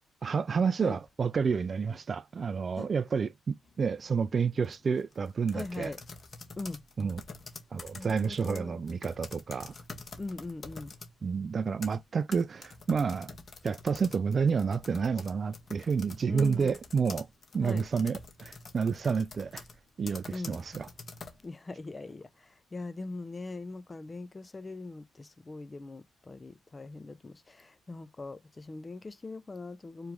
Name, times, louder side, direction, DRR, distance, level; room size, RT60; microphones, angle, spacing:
voice 1, 0.2-5.9 7.0-7.2 7.7-9.7 11.2-13.3 13.6-17.3 17.5-19.6 20.0-20.9, right 5 dB, 45° right, 0.3 m, -30 dB
sound 1, 3.6-4.0 4.6-11.1 11.6-21.4, left 4 dB, 45° left, 1.5 m, -47 dB
voice 2, 5.5-6.0 6.6-6.8 7.9-8.8 10.2-10.9 16.3-16.8 17.6-17.8 20.3-20.6 21.4-30.1, left 3 dB, 25° left, 0.5 m, -41 dB
4.6 x 3.1 x 3.6 m
supercardioid pair, 70°, 0 cm